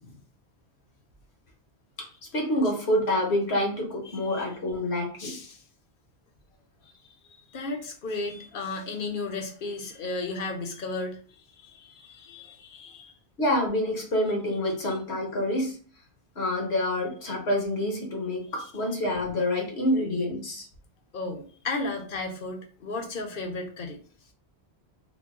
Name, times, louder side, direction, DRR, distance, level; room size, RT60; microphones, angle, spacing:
voice 1, 2.0-5.4 13.4-15.8 16.3-20.7, left 1 dB, 70° left, 0 dB, 1.4 m, -27 dB
voice 2, 4.1-4.4 5.2-5.6 6.8-6.9 7.3-11.2 11.6-13.1 14.8-15.0 21.1-24.0, left 3 dB, 55° left, 4 dB, 0.9 m, -34 dB
3.7 x 2.2 x 3.6 m, 0.41 s
omnidirectional pair, 1.1 m